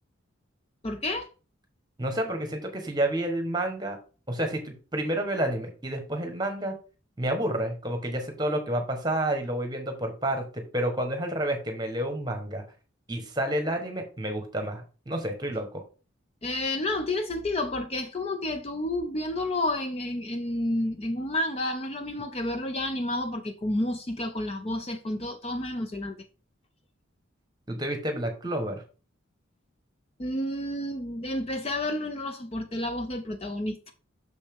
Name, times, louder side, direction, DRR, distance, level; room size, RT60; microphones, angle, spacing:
voice 1, 0.8-1.3 16.4-26.2 30.2-33.9, left 1 dB, 30° left, 0.5 m, -30 dB
voice 2, 2.0-4.0 4.3-6.7 7.2-12.6 13.1-15.8 27.7-28.8, right 1 dB, 20° right, 1.2 m, -30 dB
6.4 x 5.4 x 3.5 m
head